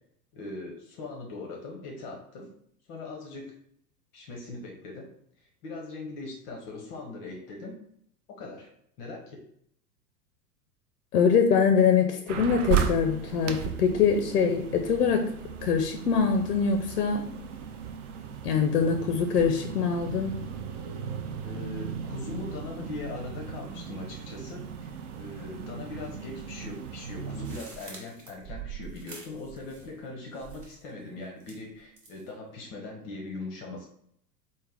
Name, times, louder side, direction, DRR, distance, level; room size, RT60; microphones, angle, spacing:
voice 1, 0.3-2.5 2.9-3.5 4.1-5.1 5.6-7.8 8.3-8.7 9.0-9.4 21.4-24.9 25.2-33.8, left 3 dB, 25° left, 1 dB, 0.5 m, -40 dB
voice 2, 11.1-15.3 15.6-17.3 18.4-20.4, left 6 dB, 75° left, 6 dB, 0.5 m, -24 dB
sound 1, 12.3-27.6, right 8 dB, 50° right, 0.5 m, -36 dB
sound 2, 27.4-30.1 30.3-30.9 31.4-32.3, right 7 dB, 30° right, 1.0 m, -45 dB
3.9 x 2.1 x 3.3 m, 0.68 s
figure-of-eight pair, 95°, 48 cm